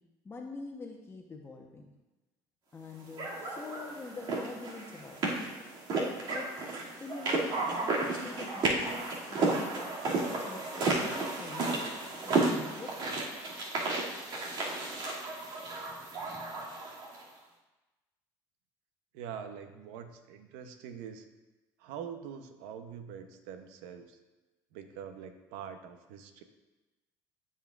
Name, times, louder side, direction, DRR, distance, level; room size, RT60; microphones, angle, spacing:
voice 1, 0.2-1.9 2.7-5.4 6.3-6.5 7.0-11.9 12.2-13.2, left 3 dB, 25° left, 1 dB, 1.0 m, -45 dB
sound 1, 3.2-17.2, right 3 dB, 55° right, 2.5 m, -33 dB
voice 2, 19.1-21.3 21.8-24.2 24.7-26.4, right 8 dB, 85° right, 8 dB, 0.8 m, -44 dB
15.5 x 5.6 x 2.5 m, 1.1 s
supercardioid pair, 95°, 9 cm